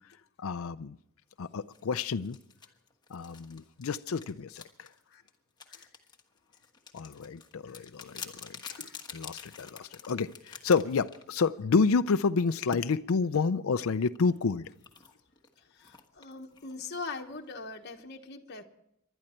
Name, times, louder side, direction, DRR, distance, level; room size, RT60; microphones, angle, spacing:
voice 1, 0.4-1.0 1.4-2.4 3.1-4.9 6.9-8.8 9.1-14.7, left 4 dB, 75° left, 0.5 m, -29 dB
sound 1, 1.7-11.6 12.7-12.9 14.2-18.0, left 5 dB, 20° left, 1.3 m, -48 dB
voice 2, 15.6-18.6, left 4 dB, 50° left, 1.1 m, -42 dB
26.0 x 12.0 x 4.3 m
head